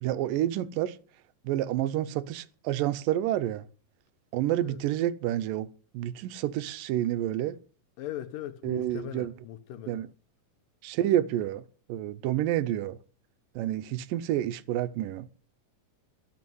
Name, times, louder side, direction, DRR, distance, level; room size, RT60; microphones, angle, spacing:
voice 1, 0.0-1.0 1.4-3.7 4.3-7.6 8.6-9.3 9.9-10.1 10.8-11.6 11.9-13.0 13.6-15.3, right 12 dB, 85° right, 2.4 m, -29 dB
voice 2, 8.0-10.0, left 11 dB, 85° left, 2.6 m, -40 dB
17.5 x 6.3 x 7.7 m
omnidirectional pair, 3.8 m